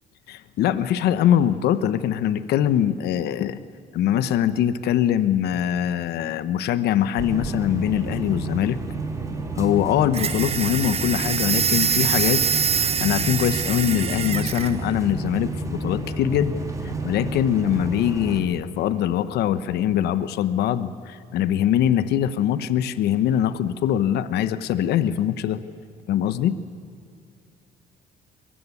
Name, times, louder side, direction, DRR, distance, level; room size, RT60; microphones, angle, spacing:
voice 1, 0.3-3.6 3.9-8.8 9.5-12.4 12.7-16.6 17.0-25.6 26.1-26.6, left 10 dB, 75° left, 13 dB, 1.1 m, -22 dB
sound 1, 7.2-18.4, right 3 dB, 20° right, 3.1 m, -31 dB
sound 2, 10.1-14.7, right 7 dB, 35° right, 0.8 m, -24 dB
23.0 x 21.5 x 9.8 m, 2.4 s
cardioid pair, 110°, 17 cm